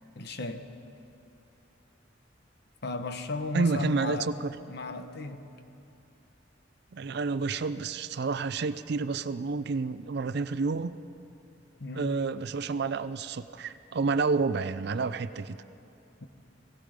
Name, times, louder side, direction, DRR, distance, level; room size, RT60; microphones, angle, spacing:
voice 1, 0.2-0.6 2.8-4.3 4.7-5.5 11.8-12.2, left 2 dB, 60° left, 8 dB, 0.9 m, -35 dB
voice 2, 3.5-4.5 6.9-10.9 11.9-15.6, right 4 dB, 60° right, 14 dB, 0.5 m, -29 dB
17.5 x 16.5 x 5.1 m, 2.7 s
head